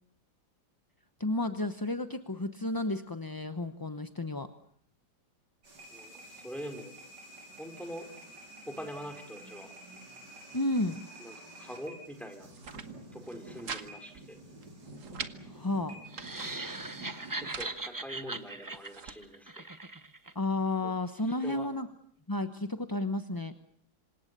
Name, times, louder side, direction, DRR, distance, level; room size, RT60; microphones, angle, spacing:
voice 1, 1.2-4.5 10.5-11.0 15.5-16.0 20.3-21.9 22.3-23.5, left 2 dB, 15° left, 8 dB, 0.8 m, -32 dB
sound 1, 5.6-17.5, right 1 dB, 80° right, 5.5 m, -49 dB
voice 2, 5.9-6.9 7.6-8.1 8.7-9.7 11.2-12.5 13.1-14.4 17.4-19.6 20.8-21.7, equal, ahead, 5 dB, 4.6 m, -44 dB
sound 2, 12.4-12.9 13.2-13.9 14.1-14.2 14.6-15.3 15.9-16.5 17.2-17.8 18.4-19.2, right 6 dB, 50° right, 1.7 m, -43 dB
sound 3, 16.1-20.3, right 2 dB, 15° right, 0.8 m, -40 dB
27.0 x 26.0 x 6.8 m, 0.64 s
omnidirectional pair, 1.8 m